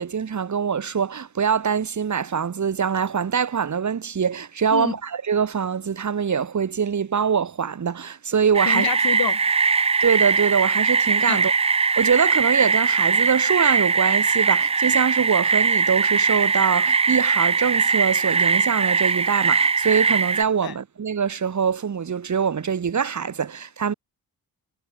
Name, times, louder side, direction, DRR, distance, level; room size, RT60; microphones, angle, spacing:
voice 1, 0.0-8.9 10.0-11.5 12.0-23.9, right 7 dB, 50° right, 1.5 m, -24 dB
sound 1, 8.5-20.4, right 5 dB, 15° right, 0.3 m, -20 dB
voice 2, 8.6-9.4 11.3-11.4 20.6-20.8, left 9 dB, 70° left, 1.8 m, -27 dB
cardioid pair, 55°, 38 cm